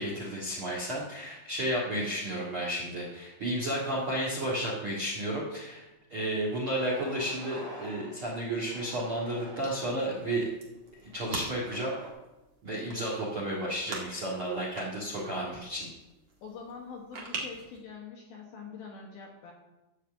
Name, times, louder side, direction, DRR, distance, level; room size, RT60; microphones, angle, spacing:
voice 1, 0.0-5.8 6.1-10.5 11.0-11.9 12.6-15.9, right 1 dB, 50° right, -4 dB, 1.6 m, -32 dB
sound 1, 3.8-4.5 5.0-5.1 6.1-6.3 6.7-8.2 8.6-10.0 10.8-12.1, right 1 dB, 25° right, 1.9 m, -48 dB
sound 2, 9.6-17.8, right 3 dB, 75° right, 1.0 m, -45 dB
voice 2, 16.4-19.5, left 5 dB, 70° left, 0 dB, 2.5 m, -44 dB
13.0 x 4.9 x 7.7 m, 1.0 s
omnidirectional pair, 5.5 m